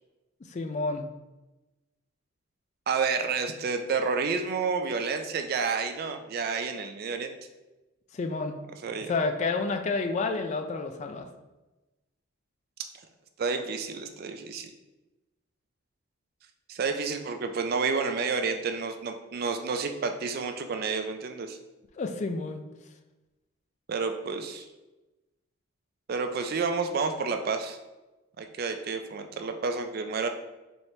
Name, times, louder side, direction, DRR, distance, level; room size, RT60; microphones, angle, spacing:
voice 1, 0.4-1.1 8.1-8.6 9.1-11.3 22.0-22.6, left 3 dB, 35° left, 6 dB, 0.3 m, -30 dB
voice 2, 2.9-7.3 8.8-9.1 13.4-14.7 16.7-21.6 23.9-24.7 26.1-27.8 28.4-30.3, right 5 dB, 50° right, 6 dB, 0.3 m, -30 dB
4.3 x 3.3 x 2.8 m, 1.1 s
head